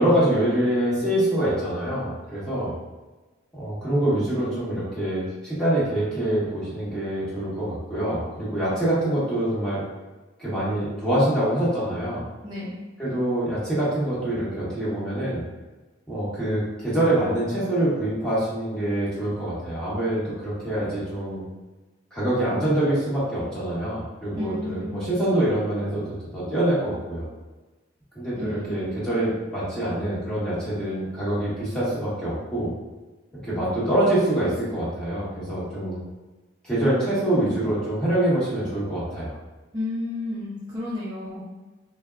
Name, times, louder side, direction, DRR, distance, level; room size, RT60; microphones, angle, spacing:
voice 1, 0.0-2.7 3.5-9.8 10.4-12.2 13.0-15.4 16.1-21.4 22.1-26.0 26.3-27.3 28.1-32.7 33.4-36.0 36.6-39.3, right 1 dB, 5° left, -10 dB, 1.1 m, -25 dB
voice 2, 12.4-12.8 24.3-25.0 28.4-29.0 39.7-41.4, left 2 dB, 20° right, -10 dB, 0.5 m, -32 dB
4.0 x 2.1 x 2.4 m, 1.2 s
head